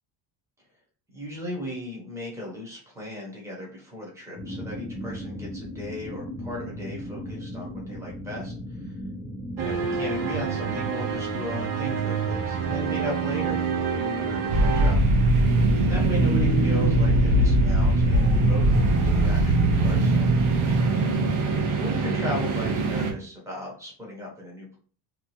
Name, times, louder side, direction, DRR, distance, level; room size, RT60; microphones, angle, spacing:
voice 1, 1.1-8.5 8.8-9.0 9.6-15.0 15.8-20.5 21.7-24.8, left 1 dB, 5° right, -3 dB, 0.8 m, -36 dB
sound 1, 4.3-21.6, left 1 dB, 10° left, 0.3 m, -38 dB
sound 2, 9.6-14.9, right 7 dB, 50° right, 0.6 m, -28 dB
sound 3, 14.5-23.1, right 2 dB, 85° right, 0.8 m, -21 dB
2.8 x 2.2 x 3.0 m, 0.42 s
cardioid pair, 175°, 47 cm